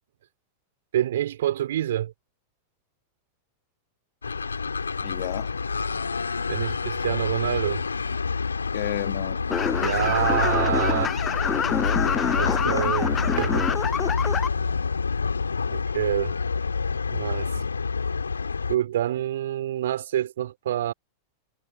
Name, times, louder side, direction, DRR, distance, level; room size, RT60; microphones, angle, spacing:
voice 1, 0.9-2.1 6.5-7.8 9.8-11.1 12.3-13.7 14.3-14.8 15.7-16.3 17.1-17.6 18.7-20.9, right 12 dB, 60° right, 3.9 m, -27 dB
sound 1, 4.2-18.8, left 5 dB, 75° left, 3.3 m, -27 dB
voice 2, 5.0-5.5 8.7-9.5 9.7-10.2 11.8-11.9 12.6-13.0, left 21 dB, 50° left, 2.3 m, -33 dB
sound 2, 9.5-14.5, left 7 dB, 20° left, 0.4 m, -26 dB
figure-of-eight pair, 90°, 0 cm